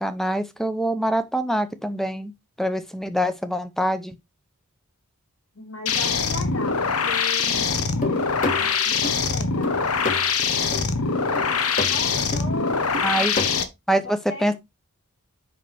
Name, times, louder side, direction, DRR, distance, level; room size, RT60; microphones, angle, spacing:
voice 1, 0.0-2.3 2.6-4.2 13.0-13.3 13.9-14.5, equal, ahead, 0.7 m, -24 dB
voice 2, 5.5-6.8 7.0-10.1 11.3-13.4 14.0-14.6, left 3 dB, 65° left, 3.9 m, -37 dB
sound 1, 5.9-13.6, left 5 dB, 85° left, 1.1 m, -23 dB
sound 2, 8.0-9.2 9.6-10.4 10.7-10.9 11.4-12.1 12.3-12.4 12.9-13.5, left 2 dB, 35° left, 1.5 m, -29 dB
7.6 x 5.7 x 3.4 m
head